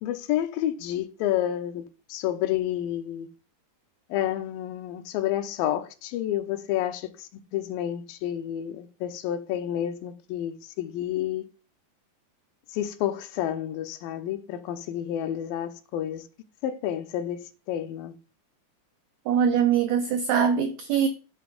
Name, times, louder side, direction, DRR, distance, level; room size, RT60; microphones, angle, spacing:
voice 1, 0.0-3.3 4.1-11.4 12.7-16.3 16.6-18.2, left 11 dB, 90° left, 2.4 m, -30 dB
voice 2, 19.3-21.1, right 7 dB, 85° right, 1.6 m, -22 dB
8.3 x 3.4 x 6.4 m
omnidirectional pair, 4.1 m